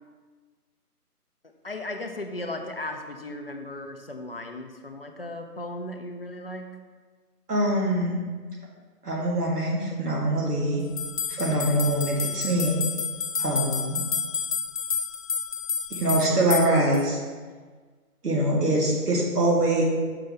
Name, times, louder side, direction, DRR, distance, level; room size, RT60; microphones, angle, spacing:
voice 1, 1.6-6.7, left 2 dB, 40° left, 5 dB, 0.4 m, -36 dB
voice 2, 7.5-8.2 9.0-10.8 11.3-12.8 13.4-14.0 15.9-17.2 18.2-19.8, right 1 dB, 75° right, -3 dB, 2.0 m, -24 dB
sound 1, 11.0-17.0, left 6 dB, 60° left, 0.8 m, -30 dB
6.6 x 4.0 x 4.5 m, 1.5 s
figure-of-eight pair, 155°, 46 cm